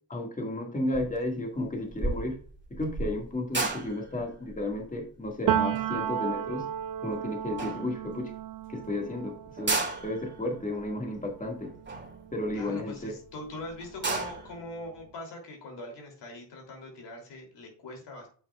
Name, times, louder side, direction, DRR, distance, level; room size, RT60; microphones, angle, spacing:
voice 1, 0.1-2.4 2.7-6.7 7.0-8.3 8.7-11.7 12.3-13.1, left 1 dB, 20° left, 2 dB, 1.8 m, -33 dB
sound 1, 0.9-1.3 1.5-7.1 7.6-8.3 8.8-8.9 9.0-9.1 9.5-13.1 13.5-13.6 13.8-14.6, right 3 dB, 25° right, 2.0 m, -34 dB
Piano, 5.5-13.1 13.4-15.0, right 10 dB, 55° right, 0.6 m, -34 dB
voice 2, 12.5-18.3, left 2 dB, 80° left, 1 dB, 3.0 m, -42 dB
8.3 x 5.9 x 2.3 m, 0.42 s
cardioid pair, 70°, 41 cm